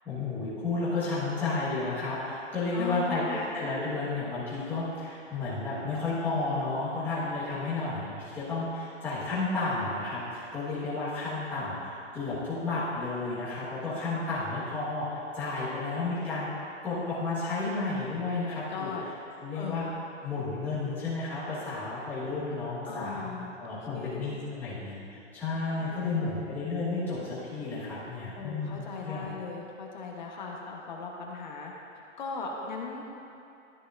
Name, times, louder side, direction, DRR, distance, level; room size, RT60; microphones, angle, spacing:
voice 1, 0.0-16.5 16.8-18.9 19.4-19.8 20.2-29.3, left 3 dB, 5° left, -12 dB, 1.3 m, -32 dB
voice 2, 2.7-3.4 18.3-19.1 19.5-19.8 22.8-24.3 25.7-26.4 28.3-31.7 32.2-33.0, left 4 dB, 40° left, -1 dB, 1.0 m, -38 dB
13.0 x 6.6 x 2.5 m, 2.6 s
hypercardioid pair, 175°, 37 cm